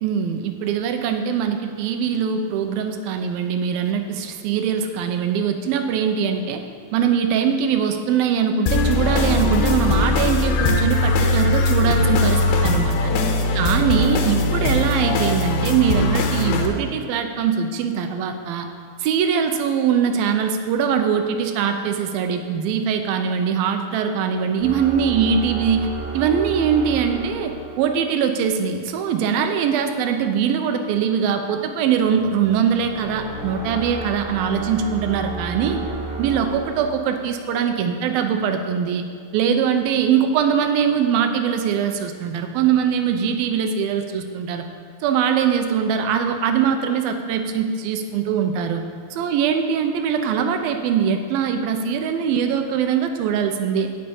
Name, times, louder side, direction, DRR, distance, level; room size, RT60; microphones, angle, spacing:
voice 1, 0.0-6.6 6.9-13.1 13.5-18.7 19.0-25.9 26.1-35.8 36.2-39.0 39.3-44.6 45.0-48.8 49.1-53.9, right 7 dB, 90° right, 6 dB, 2.6 m, -22 dB
sound 1, 8.7-16.7, left 2 dB, 85° left, 2.8 m, -20 dB
sound 2, 24.6-28.3 32.8-37.6, right 3 dB, 20° right, 2.8 m, -33 dB
9.5 x 6.7 x 8.6 m, 2.2 s
omnidirectional pair, 4.2 m